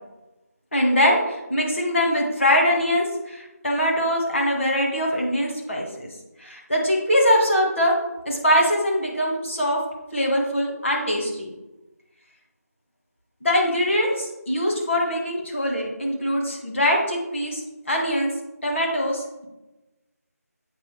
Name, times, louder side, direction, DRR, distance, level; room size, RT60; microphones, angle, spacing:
voice 1, 0.7-6.1 6.4-7.9 8.3-9.8 10.1-11.5 13.4-18.3 18.6-19.5, equal, 50° left, -1 dB, 1.7 m, -22 dB
8.0 x 4.7 x 3.3 m, 1.0 s
figure-of-eight pair, 180°, 9 cm